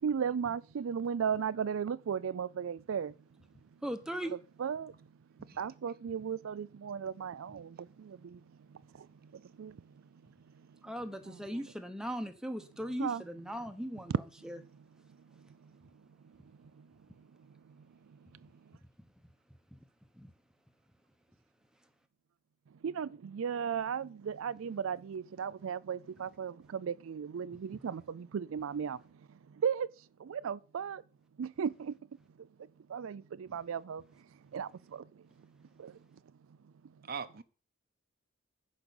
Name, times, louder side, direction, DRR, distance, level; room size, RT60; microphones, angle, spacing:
voice 1, 0.0-3.1 4.6-5.0 5.4-8.4 8.7-9.8 10.7-10.8 11.2-11.4 11.6-11.7 13.0-13.2 14.1-14.2 15.4-15.7 16.6-16.9 17.4-17.8 18.1-18.8 22.8-29.0 29.3-29.9 30.2-31.0 31.4-32.0 32.4-32.5 32.9-34.0 34.5-35.5 35.8-36.0, right 7 dB, 85° right, 0.4 m, -36 dB
voice 2, 3.8-4.3 10.8-14.1 14.4-14.6 20.2-20.3, equal, 5° right, 1.0 m, -38 dB
voice 3, 37.0-37.4, right 6 dB, 50° right, 0.8 m, -41 dB
10.5 x 5.3 x 7.0 m
head